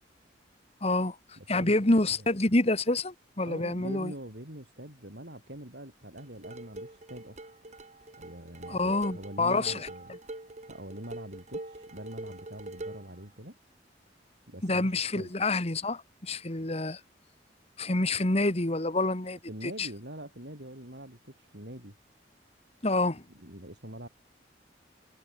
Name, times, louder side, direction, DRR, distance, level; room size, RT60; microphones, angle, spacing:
voice 1, 0.8-4.1 8.7-9.9 14.6-17.0 17.8-19.9 22.8-23.2, left 2 dB, 35° left, 1.9 m, -27 dB
voice 2, 1.4-1.7 2.1-2.3 3.5-7.4 8.2-10.1 10.7-13.6 14.5-15.3 19.5-22.0 23.4-24.1, right 1 dB, 70° right, 7.8 m, -44 dB
sound 1, 6.2-13.1, right 1 dB, 40° right, 2.6 m, -44 dB
head